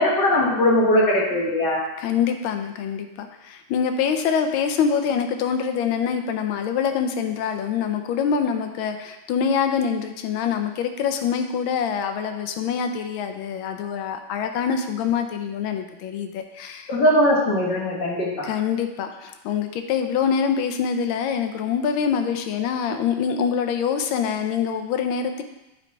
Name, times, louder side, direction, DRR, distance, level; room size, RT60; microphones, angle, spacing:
voice 1, 0.0-1.8 16.9-18.5, left 1 dB, 60° left, -4 dB, 2.0 m, -20 dB
voice 2, 2.0-16.9 18.4-25.4, left 7 dB, 80° left, 6 dB, 1.4 m, -25 dB
8.9 x 4.0 x 4.5 m, 0.96 s
omnidirectional pair, 2.2 m